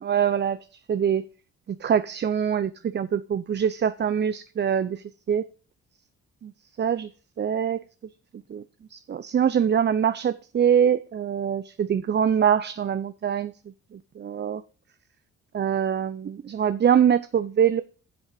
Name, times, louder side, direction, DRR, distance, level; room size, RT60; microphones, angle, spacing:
voice 1, 0.0-0.6 0.9-1.2 1.8-5.4 6.4-6.5 6.8-7.1 7.4-7.8 8.5-8.6 8.9-13.5 14.2-14.6 15.5-17.8, right 8 dB, 35° right, 0.6 m, -23 dB
10.5 x 6.3 x 4.8 m
cardioid pair, 90°, 30 cm